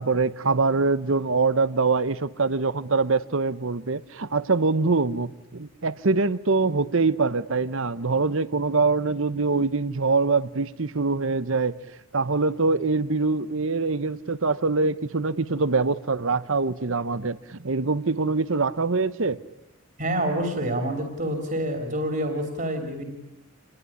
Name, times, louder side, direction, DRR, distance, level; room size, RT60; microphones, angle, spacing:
voice 1, 0.0-11.7 12.1-19.4, right 3 dB, 65° right, 16 dB, 0.9 m, -24 dB
voice 2, 20.0-23.1, right 1 dB, 40° right, 5 dB, 3.3 m, -27 dB
28.0 x 21.0 x 10.0 m, 0.93 s
head